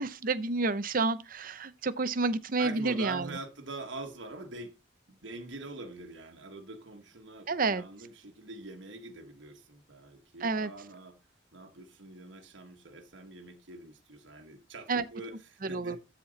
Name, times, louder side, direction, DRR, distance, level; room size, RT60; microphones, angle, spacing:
voice 1, 0.0-3.3 7.5-7.8 10.4-10.7 14.9-15.0 15.6-16.0, right 3 dB, 45° right, 0.7 m, -29 dB
voice 2, 2.6-4.7 5.1-11.2 11.5-16.0, right 2 dB, 70° right, 1.5 m, -44 dB
13.0 x 4.4 x 4.0 m
head